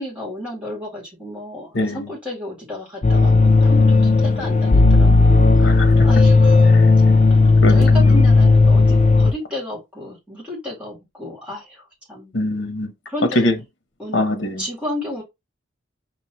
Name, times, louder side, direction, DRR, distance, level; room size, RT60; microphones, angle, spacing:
voice 1, 0.0-5.7 6.0-6.6 7.7-12.3 13.1-13.5 14.0-14.2 14.6-15.2, left 1 dB, 5° right, 2.2 m, -32 dB
voice 2, 1.7-2.1 5.6-6.1 6.6-6.9 7.6-8.1 12.3-12.9 13.4-13.5 14.1-14.6, left 1 dB, 70° left, 0.9 m, -23 dB
sound 1, 3.0-9.3, left 3 dB, 35° left, 0.5 m, -13 dB
5.3 x 3.1 x 3.0 m
head